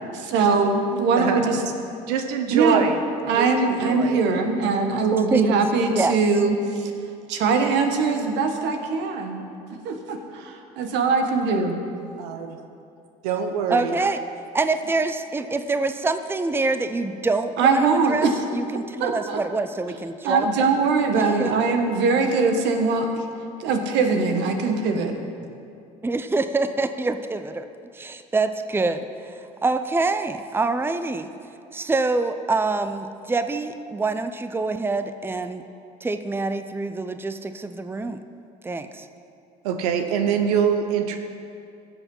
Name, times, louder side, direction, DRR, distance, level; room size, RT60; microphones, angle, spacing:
voice 1, 0.2-1.6 2.5-2.8 3.3-6.9 7.3-9.4 9.8-11.8 17.6-18.3 19.0-19.4 20.2-23.2 23.6-25.1, right 4 dB, 70° right, 5 dB, 1.4 m, -21 dB
voice 2, 1.1-1.6 2.1-3.0 3.3-4.2 12.2-12.6 13.2-13.9 39.6-41.2, right 7 dB, 85° right, 6 dB, 0.8 m, -24 dB
voice 3, 13.7-14.3 14.5-20.7 21.1-21.7 26.0-27.7 27.9-31.3 31.7-35.6 36.0-38.2 38.6-39.1, right 3 dB, 10° right, 10 dB, 0.6 m, -26 dB
15.5 x 7.0 x 5.5 m, 2.5 s
hypercardioid pair, 70°, 19 cm